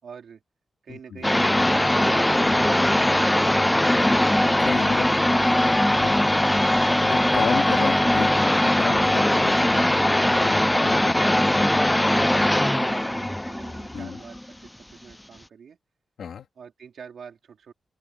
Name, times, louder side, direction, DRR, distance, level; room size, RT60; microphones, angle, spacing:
voice 1, 0.0-0.4 0.8-1.5 1.9-3.5 4.8-6.5 9.8-10.1 12.0-15.8 16.6-17.7, right 7 dB, 65° right, 4.7 m, -44 dB
voice 2, 0.9-1.2 4.4-5.0 6.0-6.1 7.0-9.8 10.4-11.1 13.9-14.2 16.2-16.5, left 7 dB, 75° left, 2.9 m, -32 dB
sound 1, 1.2-14.7, left 1 dB, 5° left, 0.3 m, -20 dB
open air
wide cardioid pair, 165°, 0 cm